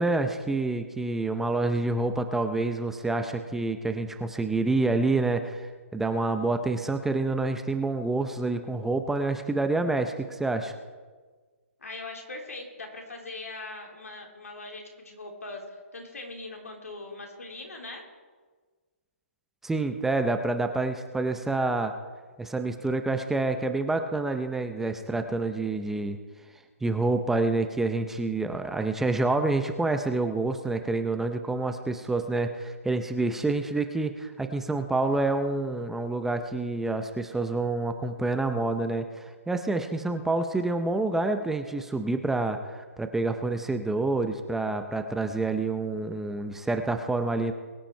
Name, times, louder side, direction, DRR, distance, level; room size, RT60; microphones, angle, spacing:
voice 1, 0.0-10.7 19.6-21.9 22.4-26.2 26.8-47.5, right 2 dB, 5° right, 7 dB, 0.6 m, -28 dB
voice 2, 11.8-18.0, left 2 dB, 85° left, 1 dB, 3.4 m, -41 dB
22.0 x 9.0 x 4.5 m, 1.4 s
hypercardioid pair, 145°, 8 cm